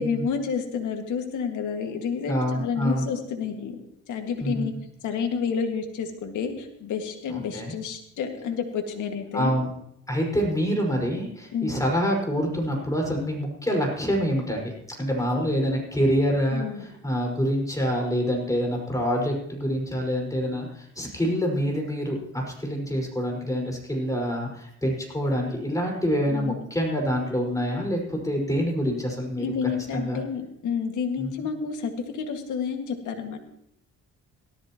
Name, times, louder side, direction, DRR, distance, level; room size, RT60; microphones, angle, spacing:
voice 1, 0.0-3.8 4.1-4.7 5.0-9.5 11.5-11.8 16.5-16.8 26.3-26.6 29.4-33.4, left 6 dB, 80° left, 4 dB, 2.0 m, -30 dB
voice 2, 2.3-3.1 4.4-4.6 7.3-7.7 9.3-9.7 10.1-14.7 15.0-29.4 29.9-30.2 31.2-31.5, equal, 10° left, 0 dB, 5.3 m, -26 dB
17.5 x 13.5 x 3.0 m, 0.74 s
cardioid pair, 90°, 30 cm